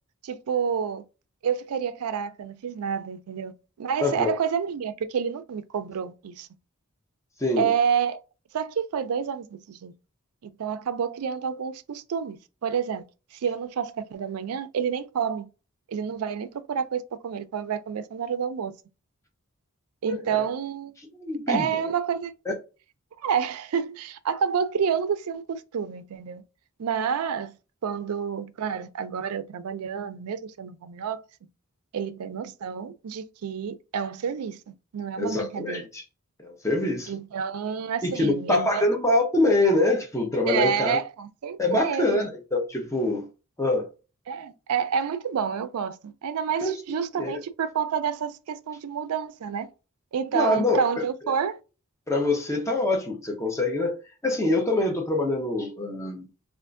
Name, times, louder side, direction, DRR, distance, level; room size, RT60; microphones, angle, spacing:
voice 1, 0.2-1.0 1.4-3.5 3.8-6.5 7.6-8.2 8.5-9.9 10.4-13.0 13.3-15.5 15.9-18.7 20.0-20.9 21.5-22.3 23.2-26.4 26.8-27.5 27.8-31.2 31.9-35.9 37.1-38.9 40.5-42.2 44.3-49.7 50.1-51.6, right 7 dB, 85° right, 0.4 m, -29 dB
voice 2, 4.0-4.3 7.4-7.7 20.1-20.4 21.1-21.7 22.5-22.6 35.2-36.0 36.4-37.1 38.0-41.0 41.6-43.3 43.6-43.9 46.6-46.7 47.2-47.4 50.3-51.0 52.1-54.0 54.2-56.3, left 2 dB, 15° left, 0.7 m, -25 dB
3.4 x 2.5 x 2.5 m
head